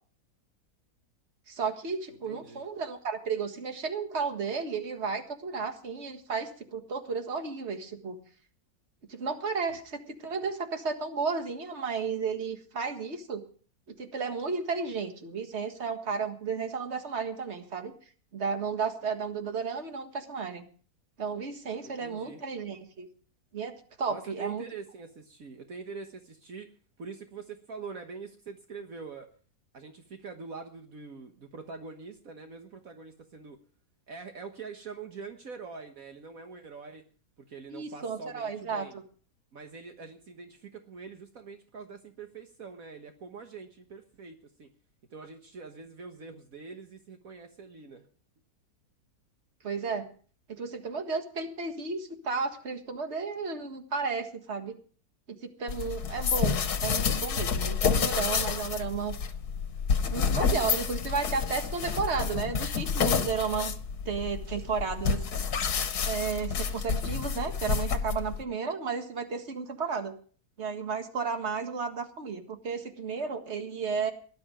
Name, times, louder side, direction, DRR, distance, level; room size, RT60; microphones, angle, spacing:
voice 1, 1.5-8.2 9.1-13.4 14.0-17.9 18.3-20.6 21.2-23.1 23.5-23.7 24.0-24.6 37.7-39.0 49.6-50.1 50.5-54.7 55.6-59.1 60.1-63.7 64.1-65.2 66.0-70.1 70.6-74.1, right 5 dB, 45° right, 6 dB, 1.9 m, -33 dB
voice 2, 2.3-2.7 21.8-22.4 24.1-26.7 27.0-29.3 29.7-33.6 34.1-37.0 37.4-39.0 39.5-44.7 45.1-48.1, right 5 dB, 65° right, 5 dB, 1.7 m, -44 dB
sound 1, 55.7-68.4, left 6 dB, 85° left, 1.7 m, -29 dB
18.5 x 11.5 x 5.0 m, 0.43 s
omnidirectional pair, 1.6 m